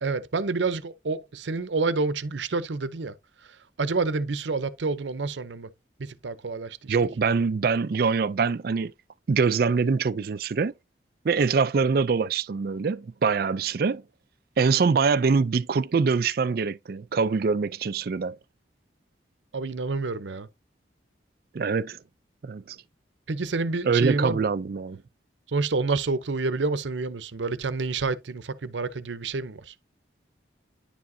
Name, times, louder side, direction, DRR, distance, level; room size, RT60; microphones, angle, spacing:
voice 1, 0.0-3.1 3.8-5.7 6.0-7.0 19.5-20.5 23.3-24.5 25.5-29.7, right 3 dB, 85° right, 0.7 m, -28 dB
voice 2, 6.9-8.9 9.3-10.7 11.2-14.0 14.6-18.4 21.5-22.0 22.4-22.8 23.8-25.0, right 5 dB, 55° right, 0.4 m, -24 dB
10.0 x 4.8 x 2.7 m
head